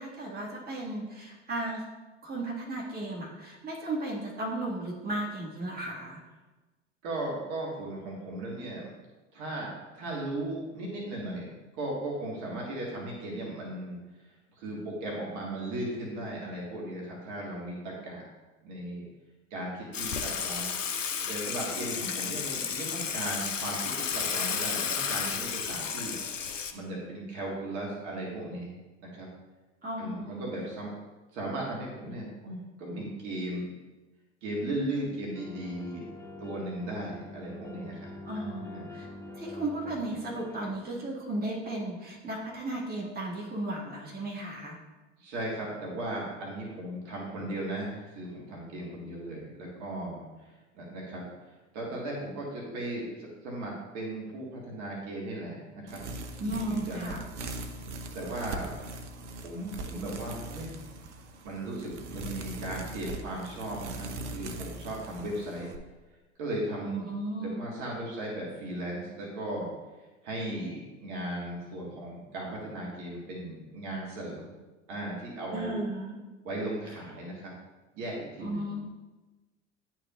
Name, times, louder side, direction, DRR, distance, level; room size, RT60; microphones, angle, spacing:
voice 1, 0.0-1.8 2.2-6.2 29.8-30.4 38.2-39.1 39.4-44.8 56.4-57.2 66.8-67.6 75.5-76.2 78.4-78.8, right 1 dB, 25° right, -4 dB, 1.9 m, -35 dB
voice 2, 7.0-8.9 9.3-9.7 10.0-11.5 11.8-14.0 14.6-18.2 18.6-19.0 19.5-20.7 21.3-26.2 26.7-29.3 30.0-30.9 31.3-33.6 34.4-36.0 36.4-38.9 45.2-51.2 51.7-56.0 56.4-57.1 58.1-58.7 59.3-60.7 61.4-65.7 66.4-67.1 67.4-69.7 70.2-74.5 74.9-75.8 76.4-77.5 77.9-78.7, right 1 dB, 50° right, -3 dB, 1.7 m, -37 dB
Water / Water tap faucet / Sink (filling or washing), 19.9-26.7, left 6 dB, 85° left, 0.6 m, -32 dB
sound 1, 35.3-40.8, left 2 dB, 10° left, 0.7 m, -45 dB
sound 2, 55.9-65.8, right 2 dB, 70° right, 0.7 m, -40 dB
10.5 x 4.5 x 2.5 m, 1.2 s
figure-of-eight pair, 75°, 37 cm